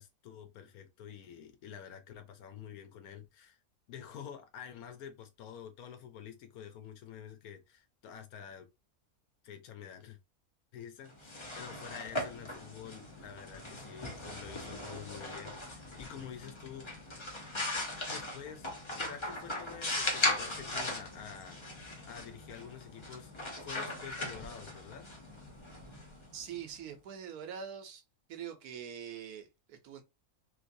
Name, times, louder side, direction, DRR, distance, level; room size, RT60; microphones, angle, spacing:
voice 1, 0.0-3.6 3.9-8.7 9.4-10.2 10.7-16.9 18.1-18.7 18.9-25.1, left 8 dB, 80° left, 1.2 m, -48 dB
sound 1, 11.1-26.8, left 1 dB, 25° left, 0.6 m, -39 dB
voice 2, 26.3-28.0 28.3-30.0, right 8 dB, 85° right, 1.3 m, -44 dB
3.2 x 3.0 x 2.6 m
omnidirectional pair, 1.6 m